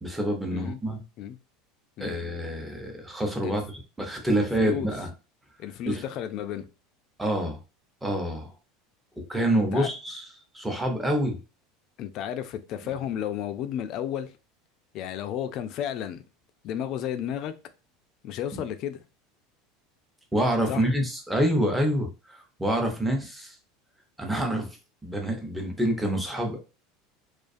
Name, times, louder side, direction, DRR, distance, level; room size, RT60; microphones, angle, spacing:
voice 1, 0.0-1.0 2.0-5.1 5.9-6.0 7.2-7.6 8.0-8.5 9.3-10.3 10.5-11.4 20.3-23.5 24.2-24.7 25.0-26.6, right 1 dB, 5° right, 0.6 m, -27 dB
voice 2, 4.2-4.9 5.6-6.7 9.5-9.9 12.0-14.3 14.9-16.2 16.6-17.5 18.2-19.0 20.7-20.9, left 10 dB, 50° left, 0.3 m, -33 dB
2.3 x 2.3 x 2.5 m
supercardioid pair, 120°, 0 cm